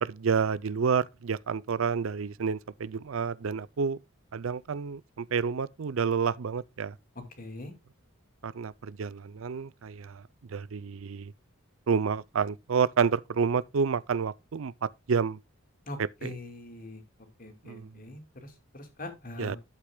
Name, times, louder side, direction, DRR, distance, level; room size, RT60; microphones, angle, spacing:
voice 1, 0.0-4.0 4.3-6.9 8.4-10.2 10.5-11.3 11.9-15.4 16.0-16.3 17.6-17.9 19.4-19.6, right 6 dB, 80° right, 0.5 m, -29 dB
voice 2, 7.1-7.7 15.9-17.0 17.4-19.6, left 1 dB, 45° left, 2.6 m, -42 dB
12.0 x 8.1 x 2.3 m
head